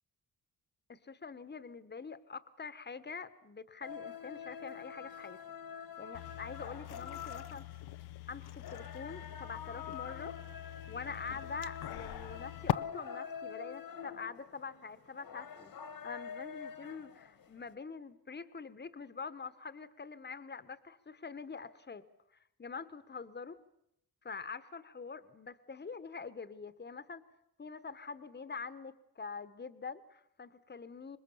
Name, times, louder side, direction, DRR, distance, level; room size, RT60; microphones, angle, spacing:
voice 1, 0.9-5.4 6.0-7.8 8.3-10.4 10.9-15.7 16.0-22.0 22.6-23.6 24.2-27.2 27.6-31.2, left 5 dB, 25° left, 13 dB, 1.3 m, -45 dB
sound 1, 3.8-17.7, left 7 dB, 65° left, 1.8 m, -46 dB
sound 2, 6.1-12.7, left 12 dB, 85° left, 0.8 m, -42 dB
26.5 x 21.0 x 7.1 m, 0.78 s
cardioid pair, 105°, 38 cm